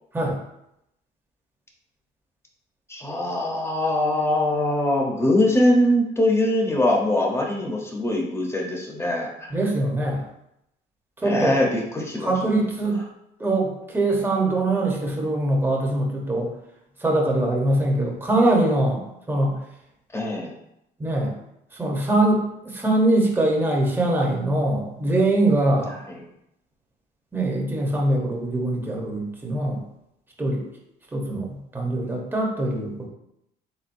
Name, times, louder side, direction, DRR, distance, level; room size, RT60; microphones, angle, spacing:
voice 1, 2.9-9.5 11.2-12.6 20.1-20.5 26.0-26.2, left 1 dB, 15° left, -1 dB, 1.0 m, -22 dB
voice 2, 9.5-10.2 11.2-11.6 12.2-13.0 13.4-16.5 17.0-19.0 19.3-19.5 21.0-21.3 21.7-25.9 27.3-29.8 30.4-30.7 31.1-33.1, right 2 dB, 10° right, -2 dB, 1.1 m, -23 dB
4.4 x 3.9 x 2.7 m, 0.81 s
cardioid pair, 110°, 17 cm